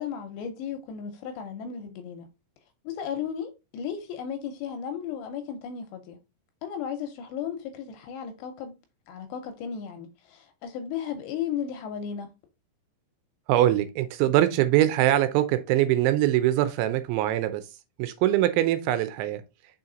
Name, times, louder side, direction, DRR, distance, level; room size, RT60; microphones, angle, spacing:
voice 1, 0.0-2.3 2.8-6.2 6.6-8.7 9.1-12.3, left 8 dB, 80° left, 2.6 m, -35 dB
voice 2, 13.5-17.7 18.0-19.4, right 13 dB, 80° right, 2.8 m, -23 dB
6.2 x 4.3 x 3.8 m
omnidirectional pair, 5.5 m